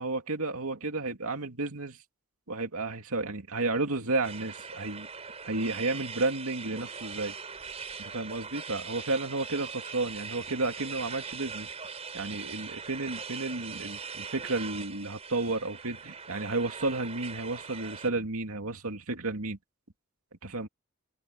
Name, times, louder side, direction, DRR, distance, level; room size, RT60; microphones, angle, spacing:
voice 1, 0.0-2.0 2.5-5.1 5.4-7.3 8.0-11.7 12.1-19.6 20.4-20.7, right 2 dB, 90° right, 2.5 m, -32 dB
sound 1, 4.2-18.1, right 5 dB, 30° right, 5.6 m, -41 dB
open air
head